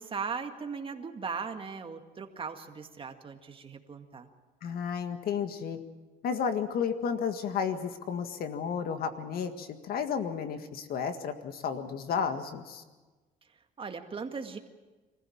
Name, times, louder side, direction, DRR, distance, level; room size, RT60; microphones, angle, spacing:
voice 1, 0.0-4.3 13.8-14.6, right 5 dB, 30° right, 5 dB, 2.0 m, -38 dB
voice 2, 4.6-5.8 6.2-12.8, left 7 dB, 65° left, 8 dB, 1.9 m, -32 dB
24.5 x 15.0 x 8.7 m, 1.3 s
cardioid pair, 110°, 17 cm